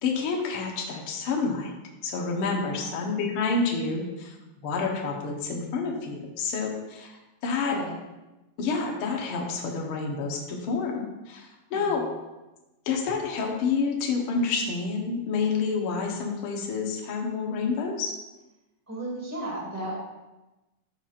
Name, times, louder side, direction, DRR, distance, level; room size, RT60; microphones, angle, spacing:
voice 1, 0.0-1.7 2.0-4.3 4.6-7.8 8.6-12.0 12.9-18.1, left 4 dB, 70° left, 0 dB, 1.3 m, -28 dB
voice 2, 2.5-2.9 7.7-7.9 11.7-12.0 18.9-19.9, right 1 dB, 5° right, -4 dB, 1.5 m, -35 dB
13.0 x 5.7 x 2.5 m, 1.1 s
omnidirectional pair, 3.8 m